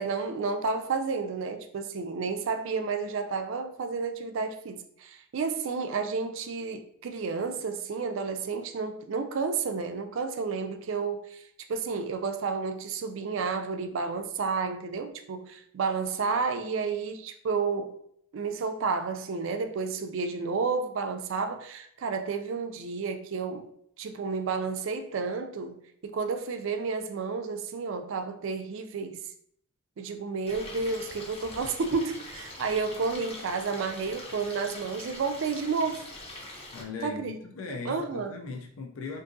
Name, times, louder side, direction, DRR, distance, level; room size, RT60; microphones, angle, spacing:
voice 1, 0.0-11.4 11.7-18.0 18.3-23.7 24.0-29.2 30.0-36.0 37.0-37.3 37.7-38.4, right 4 dB, 65° right, 0.4 m, -31 dB
Stream, 30.5-36.8, left 1 dB, 30° left, 0.6 m, -43 dB
voice 2, 36.7-39.2, left 4 dB, 80° left, 0.4 m, -38 dB
3.6 x 2.6 x 2.6 m
head